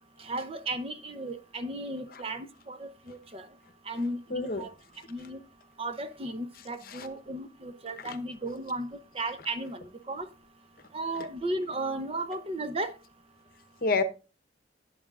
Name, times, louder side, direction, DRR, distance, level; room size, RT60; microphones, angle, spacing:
voice 1, 0.2-3.5 3.9-4.7 5.1-5.4 5.8-8.9 9.1-10.3 10.9-12.9, right 2 dB, 30° right, 0.7 m, -35 dB
voice 2, 4.3-4.7 6.8-7.1 8.0-8.2 11.1-11.3 13.8-14.0, left 3 dB, 50° left, 1.0 m, -29 dB
12.0 x 8.7 x 2.4 m
head